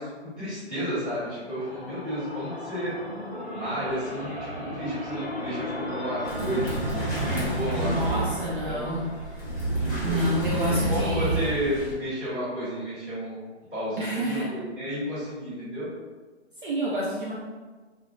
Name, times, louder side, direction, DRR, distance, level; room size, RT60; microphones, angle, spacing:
voice 1, 0.0-2.9 3.5-8.3 8.6-8.8 9.8-10.3 10.6-13.4 13.7-15.9, equal, 5° right, -18 dB, 1.0 m, -32 dB
sound 1, 1.3-10.0, left 2 dB, 40° left, 0.8 m, -38 dB
sound 2, 2.9-7.4, right 1 dB, 80° right, 0.9 m, -44 dB
sound 3, 6.2-11.9, right 1 dB, 15° left, 0.4 m, -29 dB
voice 2, 7.7-9.3 10.0-11.4 14.0-14.6 16.6-17.3, right 1 dB, 50° right, -5 dB, 0.4 m, -28 dB
2.3 x 2.1 x 2.9 m, 1.3 s
hypercardioid pair, 155°, 35 cm